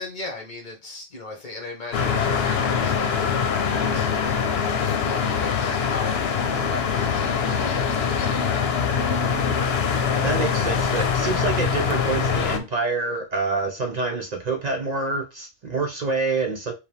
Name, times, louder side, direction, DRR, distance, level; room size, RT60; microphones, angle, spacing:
voice 1, 0.0-4.3 4.7-9.3, left 3 dB, 50° left, 1.2 m, -38 dB
Field Recording at Terrace on Barcelona, 1.9-12.6, left 6 dB, 80° left, 0.9 m, -23 dB
voice 2, 10.2-16.7, right 3 dB, 50° right, 0.7 m, -27 dB
4.9 x 2.3 x 3.3 m
omnidirectional pair, 1.0 m